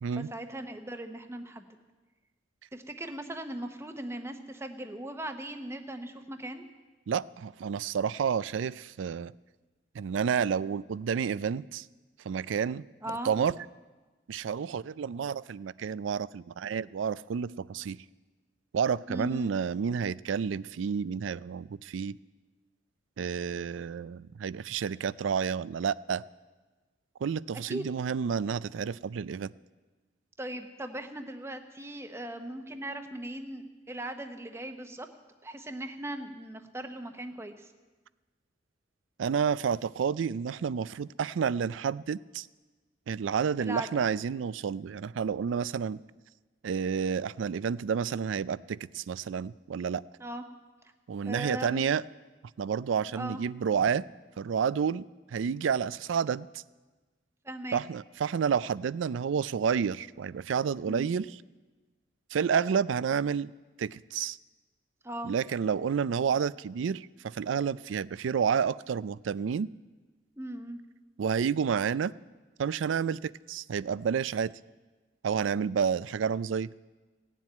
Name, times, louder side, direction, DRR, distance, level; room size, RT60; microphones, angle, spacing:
voice 1, 0.1-1.7 2.7-6.7 13.0-13.3 19.1-19.5 27.6-27.9 30.4-35.1 35.4-37.7 43.6-44.1 50.2-50.4 51.2-51.8 53.1-53.4 57.4-57.8 60.9-61.1 65.0-65.3 70.4-70.8, right 1 dB, 15° right, 7 dB, 0.9 m, -38 dB
voice 2, 7.1-9.3 9.9-11.9 12.3-12.8 13.2-13.6 14.3-18.0 18.7-22.2 23.2-26.2 27.2-29.5 39.2-42.5 43.1-46.0 46.6-50.0 51.1-52.0 52.6-54.0 54.4-55.1 55.3-56.6 57.7-61.4 62.3-63.5 63.8-64.4 65.2-69.7 71.2-72.1 72.6-74.5 75.2-76.7, right 6 dB, 80° right, 19 dB, 0.4 m, -30 dB
17.0 x 7.5 x 9.5 m, 1.2 s
head